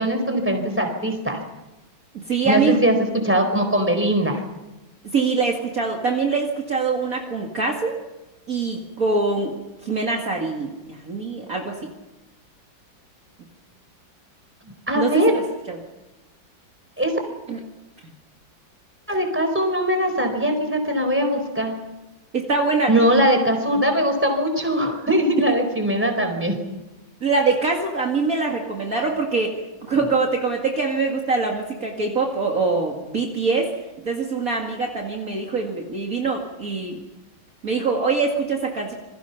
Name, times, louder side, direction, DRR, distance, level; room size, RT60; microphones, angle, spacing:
voice 1, 0.0-1.4 2.4-3.0 3.2-4.4 14.9-15.4 17.0-17.1 19.1-21.8 22.9-26.5 29.9-30.1, equal, 5° right, 5 dB, 4.2 m, -21 dB
voice 2, 2.1-2.8 5.0-7.9 8.5-10.7 11.0-11.8 15.0-15.4 15.7-15.8 17.5-17.6 22.3-23.0 27.2-33.7 34.1-37.0 37.6-38.9, right 4 dB, 45° right, 0 dB, 2.5 m, -23 dB
27.5 x 22.0 x 5.9 m, 1.0 s
omnidirectional pair, 2.1 m